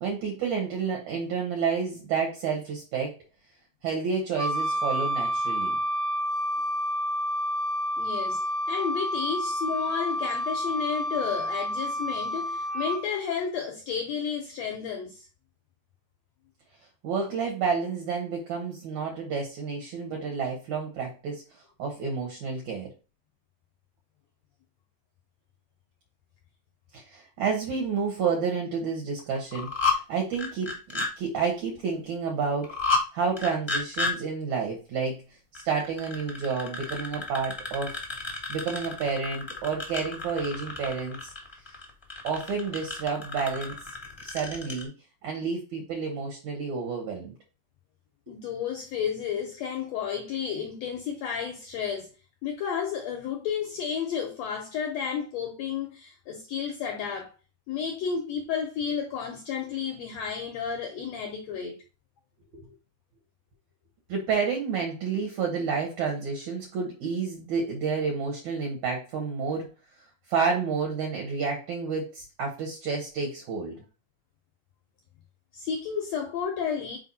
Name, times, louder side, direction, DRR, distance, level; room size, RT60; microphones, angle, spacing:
voice 1, 0.0-3.2 3.8-5.8 17.0-21.4 21.8-22.9 26.9-35.2 35.5-38.0 38.5-41.3 42.2-43.7 44.2-44.9 45.2-47.3 64.1-69.7 70.3-73.8, right 5 dB, 65° right, 2.5 m, -30 dB
Wind instrument woodwind instrument, 4.4-13.0, equal, 45° right, 0.6 m, -29 dB
voice 2, 8.0-8.4 8.7-15.3 48.3-52.1 52.4-57.3 57.7-61.8 75.5-77.0, left 7 dB, 75° left, 1.6 m, -32 dB
sound 1, 29.3-30.0 30.3-31.1 32.6-33.0 33.4-34.1 35.5-44.8, left 4 dB, 20° left, 0.6 m, -31 dB
5.2 x 4.6 x 4.1 m
omnidirectional pair, 3.9 m